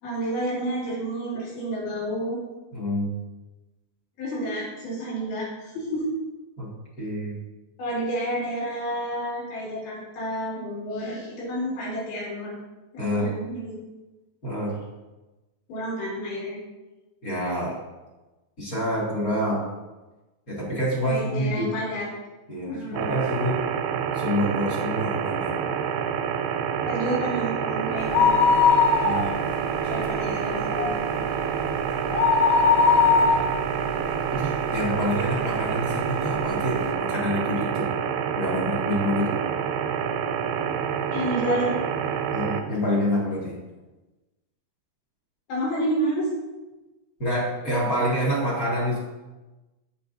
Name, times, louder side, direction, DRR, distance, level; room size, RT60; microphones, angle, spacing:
voice 1, 0.0-2.4 4.2-6.1 7.8-12.6 12.9-13.8 15.7-16.6 21.0-22.1 22.7-23.0 26.9-28.5 29.9-31.1 41.1-41.8 45.5-46.3, right 1 dB, 85° left, -6 dB, 5.7 m, -30 dB
voice 2, 2.7-3.1 6.6-6.7 7.0-7.4 13.0-13.3 14.4-14.7 17.2-17.7 18.6-19.6 20.5-21.7 22.5-23.6 24.1-25.5 29.0-29.4 32.5-32.8 33.1-33.3 34.3-37.9 38.3-39.4 42.3-43.5 47.2-49.0, equal, 30° left, -6 dB, 1.7 m, -27 dB
sound 1, 22.9-42.6, right 7 dB, 80° right, 2.3 m, -27 dB
sound 2, 28.0-29.6 30.0-30.1 30.5-34.9 35.4-35.5 36.3-36.4 36.6-36.7, left 5 dB, 65° left, 2.1 m, -20 dB
16.0 x 6.5 x 2.7 m, 1.1 s
omnidirectional pair, 5.1 m